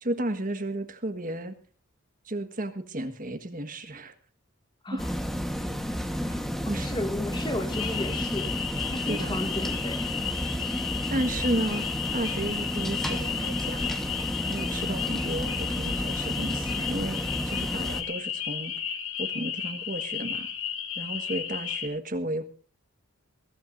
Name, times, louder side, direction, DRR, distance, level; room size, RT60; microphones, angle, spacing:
voice 1, 0.0-1.6 2.3-4.1 4.9-5.0 6.3-6.9 9.1-9.4 11.1-11.9 12.1-14.0 14.4-18.7 19.2-20.5 21.0-22.4, right 1 dB, 40° right, 8 dB, 1.5 m, -33 dB
sound 1, 5.0-18.0, equal, ahead, 1.3 m, -32 dB
voice 2, 6.6-8.5 8.8-10.1, left 1 dB, 20° left, 8 dB, 1.3 m, -34 dB
sound 2, 7.7-21.9, left 8 dB, 60° left, 2.6 m, -33 dB
22.5 x 15.5 x 2.6 m, 0.41 s
head